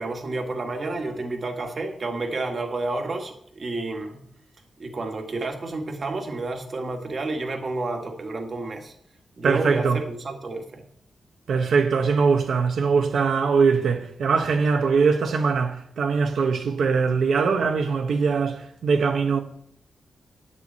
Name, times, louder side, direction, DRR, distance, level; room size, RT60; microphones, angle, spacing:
voice 1, 0.0-4.2 4.8-8.9 9.4-10.8, right 2 dB, 40° right, 1.7 m, -30 dB
voice 2, 9.4-10.0 11.5-19.4, right 5 dB, 80° right, 1.1 m, -22 dB
9.2 x 6.8 x 8.7 m
wide cardioid pair, 165°, 0 cm